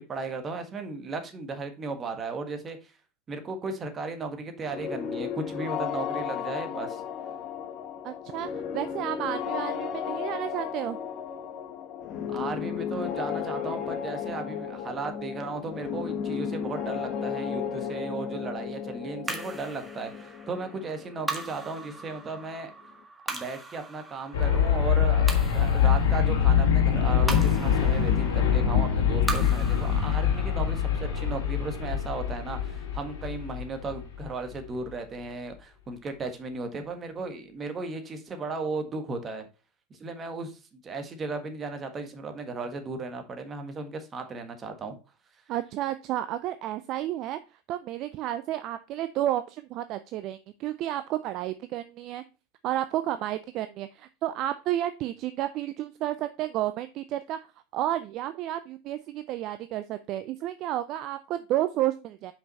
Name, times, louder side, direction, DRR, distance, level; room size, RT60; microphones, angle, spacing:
voice 1, 0.1-2.9 3.3-7.0 12.3-22.7 23.2-39.5 39.9-45.0, right 3 dB, 30° right, 1.5 m, -36 dB
sound 1, 4.6-22.3, left 7 dB, 45° left, 1.1 m, -34 dB
voice 2, 8.0-11.0 45.5-47.4 47.7-52.2 52.6-57.4 57.7-62.3, right 13 dB, 50° right, 0.4 m, -31 dB
sound 2, 19.3-33.8, right 2 dB, 10° right, 1.5 m, -40 dB
sound 3, 24.3-34.3, left 8 dB, 70° left, 2.8 m, -24 dB
5.8 x 5.3 x 4.1 m
hypercardioid pair, 85°, 0 cm